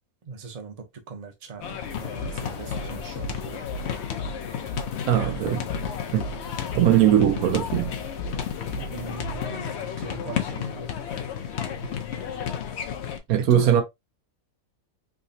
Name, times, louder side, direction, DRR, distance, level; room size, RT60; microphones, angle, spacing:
voice 1, 0.2-3.6 6.3-6.4 8.6-11.1 13.3-13.7, right 4 dB, 35° right, 0.8 m, -39 dB
sound 1, 1.6-13.2, left 8 dB, 60° left, 0.8 m, -32 dB
sound 2, 1.8-9.5, equal, 80° left, 1.4 m, -37 dB
voice 2, 5.0-5.6 6.1-6.3 6.7-7.9 13.3-13.8, right 10 dB, 80° right, 1.1 m, -20 dB
3.7 x 3.0 x 2.7 m
omnidirectional pair, 1.5 m